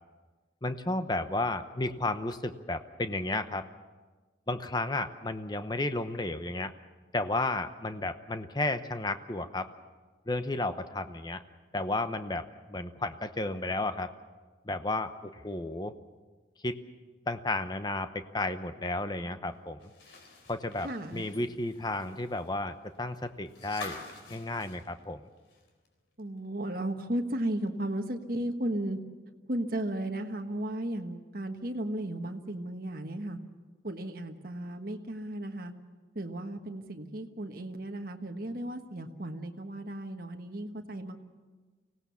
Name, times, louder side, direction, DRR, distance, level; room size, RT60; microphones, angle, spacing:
voice 1, 0.6-3.7 4.5-6.7 7.1-9.7 10.3-11.4 11.7-14.1 14.6-15.9 16.6-16.8 17.3-19.9 20.5-24.0 24.3-25.2, left 2 dB, 20° left, 9 dB, 0.8 m, -33 dB
sound 1, 19.8-25.9 26.2-26.3 27.7-27.8, left 3 dB, 80° left, 3.8 m, -48 dB
voice 2, 20.8-21.3 26.2-29.0 29.5-33.4 33.8-35.7 36.1-41.2, right 1 dB, 50° right, 4 dB, 1.4 m, -35 dB
24.5 x 17.5 x 7.1 m, 1.3 s
head